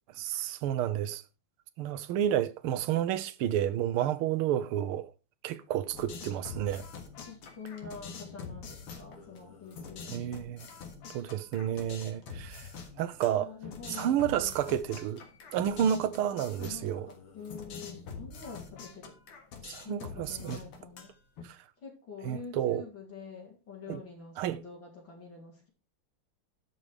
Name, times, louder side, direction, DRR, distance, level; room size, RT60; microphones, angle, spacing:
voice 1, 0.1-1.2 1.8-5.1 5.4-6.9 10.1-10.7 11.1-12.7 13.0-13.5 13.9-15.2 15.5-17.1 19.7-20.6 21.4-21.6 22.2-22.8 23.9-24.0 24.4-24.6, right 10 dB, 85° right, 1.6 m, -30 dB
sound 1, 5.9-21.4, left 5 dB, 80° left, 2.6 m, -45 dB
voice 2, 7.3-10.3 13.3-14.5 16.6-19.2 19.8-21.1 21.8-25.7, left 5 dB, 60° left, 3.3 m, -46 dB
12.0 x 5.4 x 4.8 m
omnidirectional pair, 2.4 m